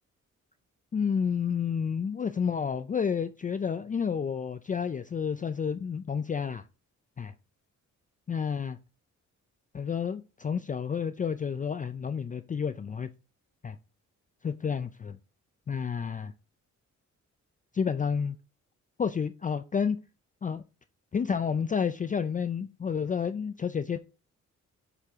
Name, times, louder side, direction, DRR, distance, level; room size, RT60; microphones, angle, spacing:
voice 1, 0.9-6.6 7.2-7.3 8.3-8.8 9.7-13.1 13.6-13.8 14.4-15.2 15.7-16.3 17.7-18.4 19.0-20.0 20.4-20.6 21.1-24.0, left 6 dB, 25° left, 11 dB, 0.4 m, -30 dB
6.9 x 4.6 x 3.5 m, 0.31 s
cardioid pair, 95°, 30 cm